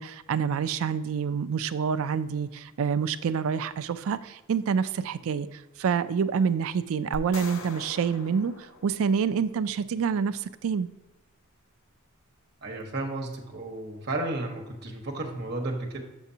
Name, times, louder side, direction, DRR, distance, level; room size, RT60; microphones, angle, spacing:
voice 1, 0.0-10.9, right 6 dB, 65° right, 13 dB, 0.4 m, -27 dB
sound 1, 7.1-9.5, left 3 dB, 60° left, 0.7 m, -43 dB
voice 2, 12.6-16.0, right 2 dB, 50° right, 1 dB, 1.2 m, -33 dB
7.1 x 6.7 x 2.8 m, 1.1 s
head